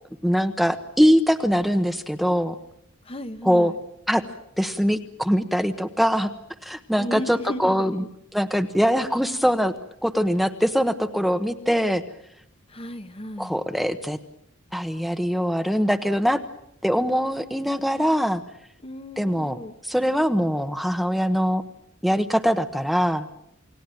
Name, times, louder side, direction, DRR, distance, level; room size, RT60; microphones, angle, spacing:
voice 1, 0.2-2.5 3.4-3.7 4.1-4.2 4.6-6.3 6.6-8.0 8.3-9.7 10.0-12.0 13.4-14.2 14.7-16.4 16.8-18.4 19.2-19.6 19.8-21.6 22.0-23.2, equal, ahead, 8 dB, 1.0 m, -22 dB
voice 2, 3.0-3.8 7.0-8.1 12.7-13.6 18.8-19.7, left 1 dB, 30° left, 9 dB, 1.2 m, -35 dB
29.0 x 18.0 x 9.1 m, 0.79 s
head